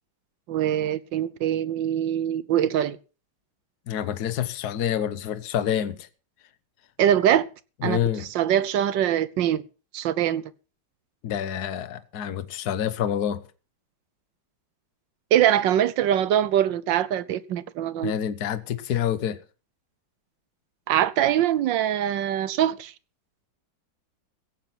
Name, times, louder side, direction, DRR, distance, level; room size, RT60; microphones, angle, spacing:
voice 1, 0.5-3.0 7.0-7.5 7.8-8.0 8.3-9.6 9.9-10.5 15.3-18.1 20.9-22.9, right 11 dB, 70° right, 1.4 m, -23 dB
voice 2, 3.9-6.1 7.8-8.3 11.2-13.4 18.0-19.4, left 9 dB, 55° left, 1.5 m, -27 dB
16.5 x 9.3 x 5.9 m
omnidirectional pair, 2.2 m